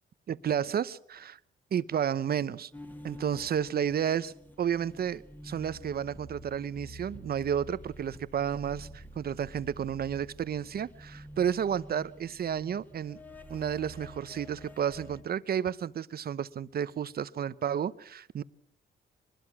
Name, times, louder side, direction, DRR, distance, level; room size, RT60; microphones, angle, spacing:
voice 1, 0.3-1.4 1.7-2.7 3.0-13.2 13.5-18.4, right 8 dB, 50° right, 0.9 m, -31 dB
sound 1, 2.7-15.2, equal, 10° left, 2.3 m, -48 dB
23.5 x 21.0 x 6.1 m
cardioid pair, 90°, 20 cm